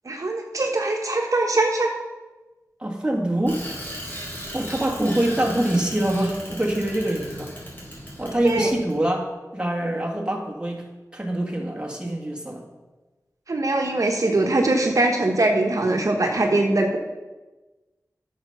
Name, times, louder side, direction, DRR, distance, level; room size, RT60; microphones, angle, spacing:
voice 1, 0.0-1.9 8.4-8.7 13.5-17.0, right 2 dB, 60° right, 2 dB, 1.0 m, -22 dB
voice 2, 2.8-3.6 4.5-7.5 8.2-10.8 11.1-12.6, right 1 dB, 15° right, 0 dB, 1.6 m, -24 dB
Bicycle, 3.5-9.0, equal, 35° left, 3.6 m, -37 dB
8.7 x 6.5 x 5.8 m, 1.2 s
wide cardioid pair, 75°, 6 cm